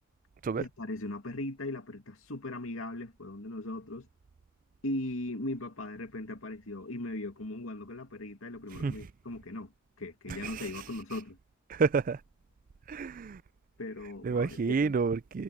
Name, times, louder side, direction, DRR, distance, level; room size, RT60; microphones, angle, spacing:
voice 1, 0.6-4.1 4.8-11.4 13.8-15.0, left 2 dB, 90° left, 2.5 m, -38 dB
voice 2, 11.7-12.2 12.9-13.4 14.2-15.4, right 5 dB, 40° right, 0.4 m, -29 dB
head